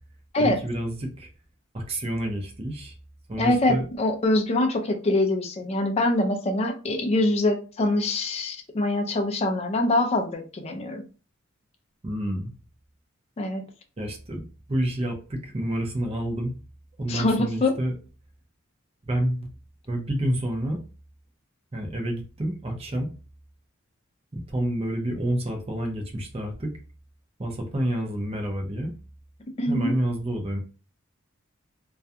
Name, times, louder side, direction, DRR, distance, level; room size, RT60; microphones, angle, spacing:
voice 1, 0.4-1.3 1.7-3.0 3.3-3.8 12.0-12.5 14.0-16.5 17.0-17.9 19.0-19.5 19.9-20.8 21.7-23.1 24.3-26.7 27.4-28.9 29.7-30.6, right 1 dB, 30° right, 2 dB, 0.5 m, -29 dB
voice 2, 3.4-11.0 13.4-13.6 17.1-17.8 29.6-29.9, left 2 dB, 30° left, 4 dB, 0.4 m, -24 dB
2.3 x 2.2 x 2.6 m, 0.35 s
head